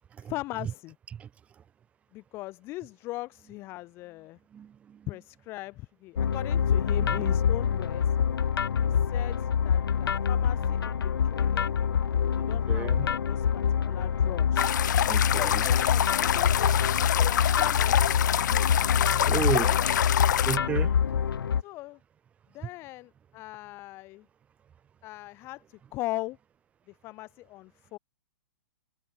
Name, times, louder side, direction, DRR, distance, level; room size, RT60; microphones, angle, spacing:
voice 1, 0.2-1.0 2.1-4.4 5.1-8.2 8.8-11.7 12.0-14.7 15.3-18.7 19.5-19.8 21.6-22.0 22.5-24.3 25.0-26.4 26.9-28.0, left 19 dB, 20° left, 7.5 m, -40 dB
voice 2, 4.5-5.1 7.0-7.2 12.4-13.1 15.0-15.6 19.2-19.7 20.5-20.9, right 8 dB, 10° right, 4.6 m, -33 dB
sound 1, 6.2-21.6, left 7 dB, 80° left, 2.4 m, -26 dB
sound 2, 14.6-20.6, left 10 dB, 55° left, 0.6 m, -27 dB
hypercardioid pair, 170°, 12 cm